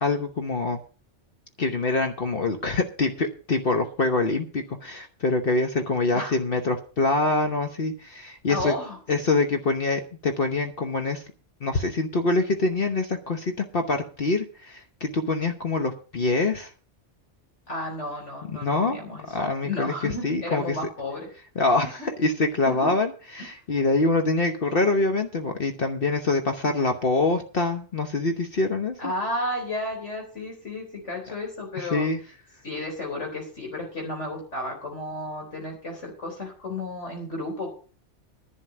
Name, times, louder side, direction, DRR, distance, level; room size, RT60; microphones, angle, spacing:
voice 1, 0.0-0.8 1.6-8.7 9.1-11.2 11.6-16.7 18.6-19.0 19.3-20.8 21.6-29.1 31.8-32.2, left 3 dB, 50° left, 5 dB, 1.2 m, -25 dB
voice 2, 8.5-9.0 17.7-19.4 19.6-21.3 22.0-22.1 22.7-22.9 23.4-23.5 26.6-26.9 29.0-32.1 32.6-37.7, left 1 dB, 75° left, 0 dB, 4.4 m, -33 dB
11.0 x 6.3 x 8.4 m, 0.40 s
omnidirectional pair, 1.2 m